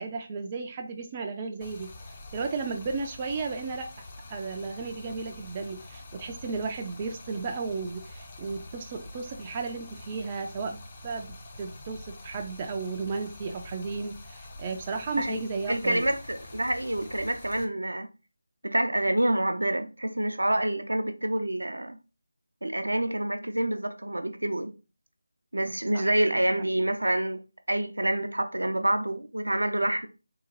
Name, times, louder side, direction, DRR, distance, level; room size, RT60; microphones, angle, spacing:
voice 1, 0.0-1.9 2.3-3.9 4.3-10.8 11.0-16.1 25.9-26.4, right 4 dB, 20° right, 0.3 m, -34 dB
Stream, 1.6-17.6, left 2 dB, 25° left, 0.5 m, -46 dB
voice 2, 15.7-18.1 18.6-22.0 22.6-24.7 25.5-27.4 27.7-30.1, right 1 dB, 80° right, 0.5 m, -27 dB
3.7 x 2.2 x 2.9 m
figure-of-eight pair, 160°, 0 cm